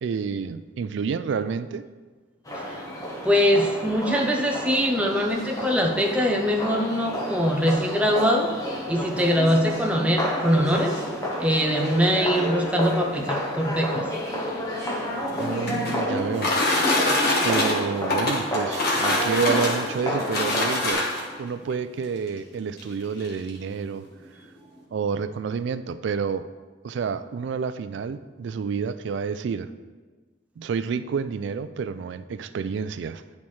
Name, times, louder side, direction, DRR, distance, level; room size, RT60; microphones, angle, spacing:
voice 1, 0.0-1.8 15.3-16.8 17.4-21.1 21.4-24.1 24.9-26.5 26.8-29.7 30.6-33.2, right 6 dB, 70° right, 13 dB, 0.3 m, -29 dB
sound 1, 2.5-20.9, equal, 20° left, 0.9 m, -30 dB
voice 2, 3.2-8.5 8.9-10.9 11.4-14.1, equal, 5° right, 1 dB, 0.4 m, -22 dB
sound 2, 15.2-21.4 22.3-22.4 22.8-22.9 23.2-23.6, left 2 dB, 55° left, 1.3 m, -25 dB
10.5 x 4.2 x 3.1 m, 1.4 s
head